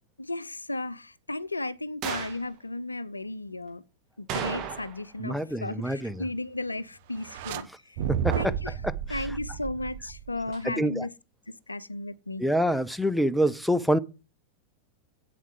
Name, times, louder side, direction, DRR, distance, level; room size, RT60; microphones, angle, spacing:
voice 1, 0.2-3.8 4.2-8.0 8.3-8.7 9.1-11.1 11.5-12.4, left 2 dB, 80° left, 0.5 m, -35 dB
sound 1, 2.0-2.5 4.3-5.2 5.4-5.5 10.5-10.7, right 8 dB, 35° right, 2.3 m, -34 dB
voice 2, 5.2-6.2 8.1-8.4 10.6-11.1 12.4-14.0, equal, ahead, 0.6 m, -26 dB
sound 2, 7.2-7.6 8.0-10.5, right 9 dB, 50° right, 1.1 m, -32 dB
8.5 x 7.2 x 7.6 m
figure-of-eight pair, 90°, 0 cm